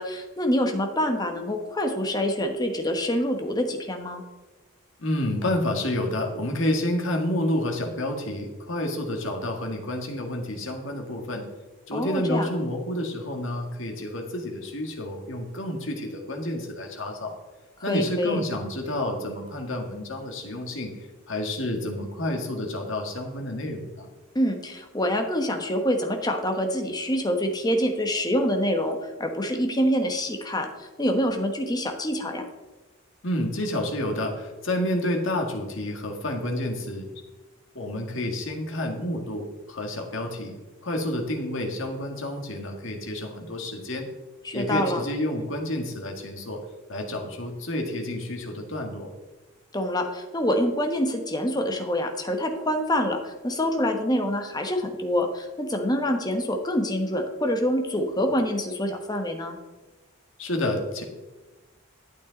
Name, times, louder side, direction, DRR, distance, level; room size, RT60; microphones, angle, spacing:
voice 1, 0.0-4.2 11.9-12.5 17.9-18.4 24.3-32.5 44.4-45.0 49.7-59.6, equal, 20° left, 5 dB, 1.2 m, -26 dB
voice 2, 5.0-11.5 11.9-17.4 17.8-24.1 33.2-37.1 37.7-44.1 44.5-46.6 46.9-49.1 60.4-61.0, left 1 dB, 65° left, 2 dB, 1.8 m, -29 dB
12.0 x 8.5 x 4.0 m, 1.2 s
head